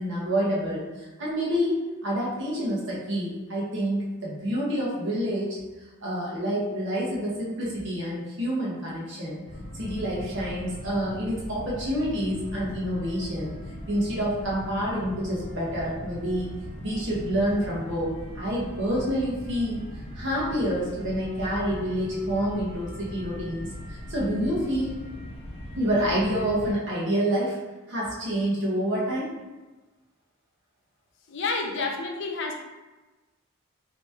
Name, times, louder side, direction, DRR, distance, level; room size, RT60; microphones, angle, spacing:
voice 1, 0.0-5.6 6.0-9.4 9.7-13.5 13.9-16.5 16.8-19.8 20.1-24.9 25.8-27.6 27.9-29.3, equal, 55° right, -6 dB, 1.1 m, -28 dB
sound 1, 9.4-26.7, equal, 25° left, 0.8 m, -39 dB
voice 2, 31.3-32.5, left 3 dB, 55° left, 1 dB, 0.5 m, -29 dB
3.0 x 2.9 x 3.4 m, 1.2 s
head